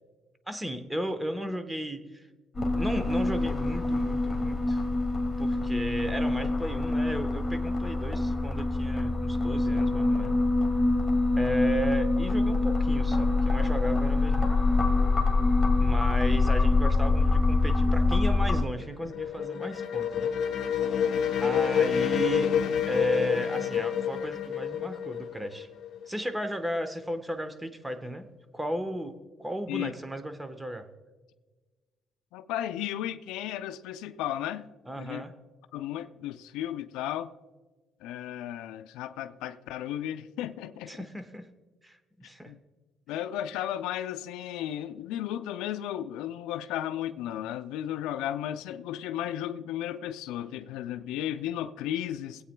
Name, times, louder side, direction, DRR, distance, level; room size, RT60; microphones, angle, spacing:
voice 1, 0.5-2.3 2.6-4.8 5.4-10.4 11.3-14.5 15.8-20.3 21.4-22.5 22.9-25.7 26.1-28.3 28.5-30.9 34.9-35.3 40.9-41.5 41.8-42.5, equal, 10° right, 1.1 m, -34 dB
sound 1, 2.5-18.6, left 2 dB, 20° left, 1.9 m, -25 dB
sound 2, 18.4-26.2, left 8 dB, 70° left, 0.9 m, -28 dB
voice 2, 32.3-34.7 35.0-35.2 35.7-37.3 38.0-40.9 42.5-42.6 43.1-52.4, left 11 dB, 85° left, 0.4 m, -34 dB
22.5 x 8.5 x 2.2 m
supercardioid pair, 75°, 0 cm